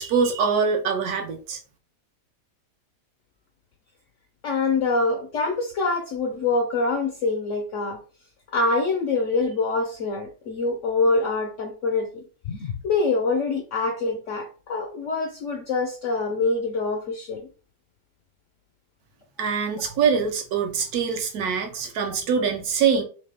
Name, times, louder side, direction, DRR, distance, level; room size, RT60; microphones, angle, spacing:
voice 1, 0.0-1.6 19.4-23.0, right 6 dB, 70° right, 1.1 m, -24 dB
voice 2, 4.4-8.0 8.5-17.5, left 3 dB, 70° left, 0.7 m, -25 dB
3.2 x 2.8 x 3.3 m
omnidirectional pair, 1.8 m